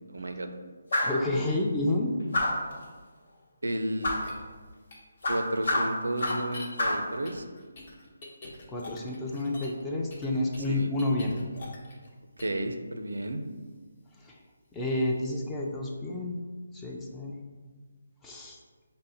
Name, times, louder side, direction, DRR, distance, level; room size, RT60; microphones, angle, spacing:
voice 1, 0.1-0.5 3.6-4.1 5.3-7.4 10.7-10.9 12.4-13.4, right 1 dB, 90° right, 6 dB, 0.4 m, -32 dB
sound 1, 0.9-1.2 2.3-2.7 4.0-4.3 5.2-6.5 6.8-7.1, left 1 dB, 65° left, 1.0 m, -28 dB
voice 2, 1.0-2.1 8.7-11.4 14.2-14.4 14.7-16.4 16.7-17.4 18.2-18.6, left 2 dB, 10° left, -1 dB, 0.4 m, -30 dB
sound 2, 4.2-4.3 4.9-5.0 6.2-6.7 7.3-9.8 10.1-12.1 12.4-12.6, left 2 dB, 40° left, 0.9 m, -45 dB
5.2 x 2.0 x 4.0 m, 1.4 s
figure-of-eight pair, 160°, 0 cm